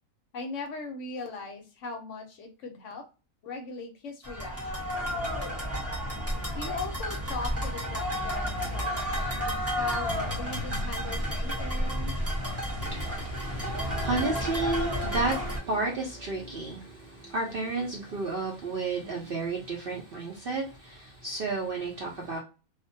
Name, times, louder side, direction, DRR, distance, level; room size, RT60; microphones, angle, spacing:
voice 1, 0.3-3.1 3.4-5.1 6.5-12.2, left 3 dB, 70° left, 4 dB, 0.9 m, -39 dB
sound 1, 4.2-15.6, equal, 15° right, 0.6 m, -31 dB
voice 2, 12.8-22.4, right 3 dB, 60° right, -1 dB, 0.6 m, -32 dB
2.4 x 2.1 x 2.6 m, 0.31 s
omnidirectional pair, 1.5 m